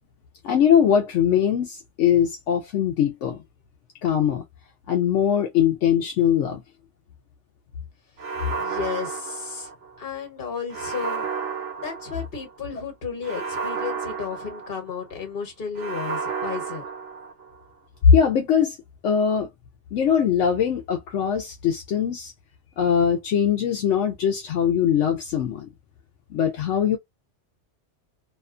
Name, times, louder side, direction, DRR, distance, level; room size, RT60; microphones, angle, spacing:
voice 1, 0.4-3.4 4.0-4.4 4.9-6.6 18.0-18.8 19.0-19.5 19.9-22.3 22.8-25.7 26.3-27.0, left 8 dB, 80° left, 0.9 m, -21 dB
sound 1, 8.2-10.1 10.7-12.5 13.2-15.1 15.8-17.6, right 5 dB, 60° right, 0.9 m, -32 dB
voice 2, 8.5-9.7 10.0-11.2 11.8-16.8, left 6 dB, 50° left, 1.4 m, -33 dB
2.8 x 2.2 x 2.4 m
omnidirectional pair, 1.2 m